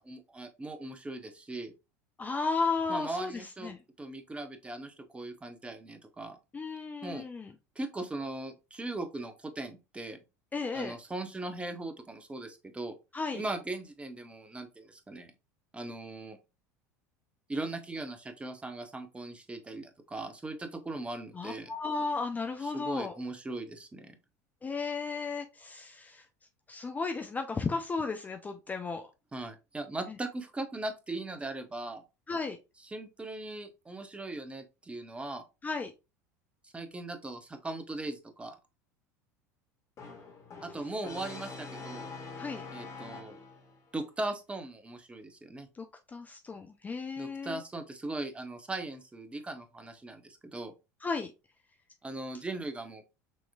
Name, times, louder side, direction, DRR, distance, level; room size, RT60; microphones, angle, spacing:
voice 1, 0.0-1.7 2.9-6.4 7.0-7.3 7.8-10.2 10.7-13.0 13.3-15.3 15.7-16.4 17.5-21.7 22.6-24.1 29.3-32.0 32.8-35.4 36.6-38.6 40.6-42.1 42.7-43.4 43.9-45.7 47.2-50.7 52.0-53.0, right 2 dB, 15° right, 0.9 m, -39 dB
voice 2, 2.2-3.8 6.5-7.5 10.5-11.0 13.1-13.4 21.3-23.1 24.6-26.2 26.7-29.0 30.1-30.2 32.3-32.6 35.6-35.9 42.4-42.6 45.7-45.8 46.1-47.6 51.0-51.3, left 4 dB, 20° left, 0.5 m, -34 dB
Brass instrument, 40.0-43.8, left 4 dB, 35° left, 1.8 m, -44 dB
6.3 x 3.0 x 2.3 m
figure-of-eight pair, 75°, 9 cm